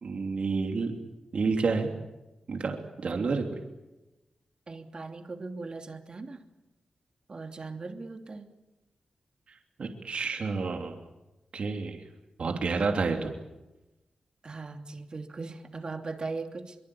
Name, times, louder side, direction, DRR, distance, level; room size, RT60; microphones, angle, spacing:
voice 1, 0.0-0.9 1.3-1.9 2.5-2.8 3.0-3.5 9.8-10.9 11.5-12.0 12.4-13.3, right 4 dB, 65° right, 4 dB, 3.1 m, -29 dB
voice 2, 4.7-6.4 7.3-8.5 12.4-12.7 14.4-16.8, right 3 dB, 45° right, 5 dB, 2.9 m, -39 dB
24.0 x 23.5 x 8.7 m, 1.0 s
cardioid pair, 80°, 2 cm